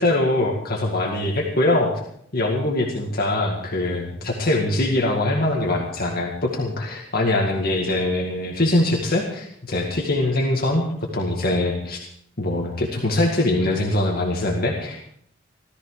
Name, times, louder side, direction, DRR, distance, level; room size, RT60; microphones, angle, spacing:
voice 1, 0.0-1.9 2.3-10.8 11.1-12.0 12.4-15.1, left 1 dB, 50° left, 0 dB, 2.0 m, -22 dB
17.5 x 13.5 x 4.9 m, 0.69 s
head